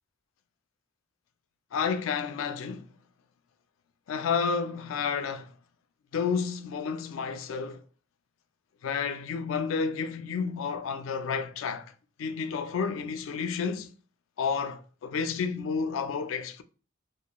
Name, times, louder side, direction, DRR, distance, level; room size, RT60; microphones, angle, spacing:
voice 1, 1.7-2.9 4.1-5.5 6.1-7.8 8.8-11.9 12.2-13.9 14.4-16.6, left 5 dB, 85° left, 0.4 m, -30 dB
2.9 x 2.0 x 2.2 m
head